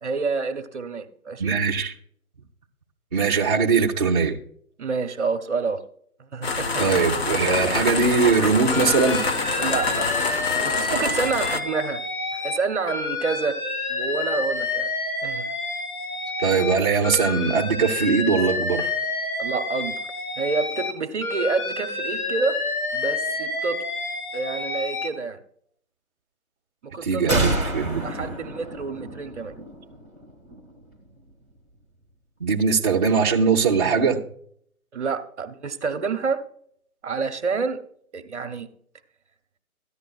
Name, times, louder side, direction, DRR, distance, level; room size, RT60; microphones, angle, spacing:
voice 1, 0.0-1.6 4.8-5.8 6.3-6.8 9.6-10.1 10.6-12.0 12.3-13.6 13.9-14.9 15.2-15.5 19.4-20.0 20.4-22.6 22.9-23.8 24.3-25.4 26.8-27.5 28.0-29.5 34.9-36.4 37.0-37.8 38.1-38.7, right 4 dB, 50° right, 10 dB, 1.0 m, -28 dB
voice 2, 1.4-1.9 3.1-4.4 6.8-9.2 16.4-18.9 27.0-28.3 32.4-34.2, right 5 dB, 30° right, -5 dB, 0.6 m, -21 dB
sound 1, 6.4-11.6, left 4 dB, 45° left, 0.8 m, -26 dB
Alarm, 8.7-12.6 12.9-16.7 17.0-20.9 21.2-25.1, left 3 dB, 85° left, 3.3 m, -29 dB
sound 2, 27.3-30.8, right 1 dB, 15° left, 1.5 m, -29 dB
14.0 x 10.5 x 2.4 m, 0.64 s
hypercardioid pair, 155°, 43 cm